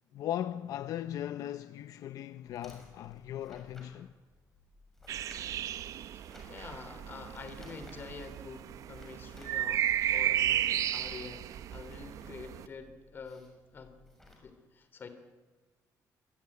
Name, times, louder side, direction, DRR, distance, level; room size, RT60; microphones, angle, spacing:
voice 1, 0.1-4.1, left 11 dB, 65° left, 0.8 m, -38 dB
sound 1, 2.5-14.3, left 2 dB, 5° left, 6.6 m, -58 dB
sound 2, 5.1-12.7, right 11 dB, 60° right, 0.8 m, -34 dB
voice 2, 5.8-14.0 14.4-15.1, left 5 dB, 30° left, 2.9 m, -47 dB
26.0 x 19.0 x 9.7 m
cardioid pair, 175°, 6 cm